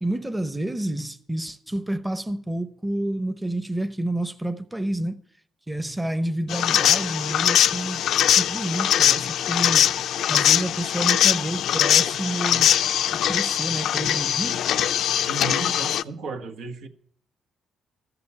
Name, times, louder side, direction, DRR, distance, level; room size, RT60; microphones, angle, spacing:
voice 1, 0.0-5.2 5.7-8.0 8.4-9.9 10.3-12.7 13.1-14.6, right 1 dB, 10° right, 0.8 m, -29 dB
sound 1, 6.5-16.0, left 10 dB, 75° left, 0.5 m, -21 dB
voice 2, 15.3-16.9, right 3 dB, 80° right, 1.5 m, -34 dB
14.0 x 6.9 x 8.5 m
cardioid pair, 90°, 0 cm